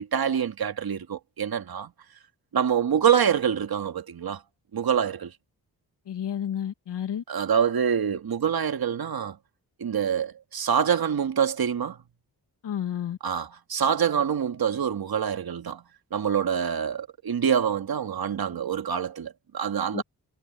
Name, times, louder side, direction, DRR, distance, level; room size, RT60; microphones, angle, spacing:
voice 1, 0.0-1.9 2.5-4.4 4.7-5.3 7.3-9.4 9.8-12.0 13.2-15.8 16.1-20.0, right 8 dB, 60° right, 1.9 m, -26 dB
voice 2, 6.1-7.2 12.6-13.2 19.9-20.0, left 9 dB, 85° left, 2.1 m, -31 dB
cardioid pair, 55°, 40 cm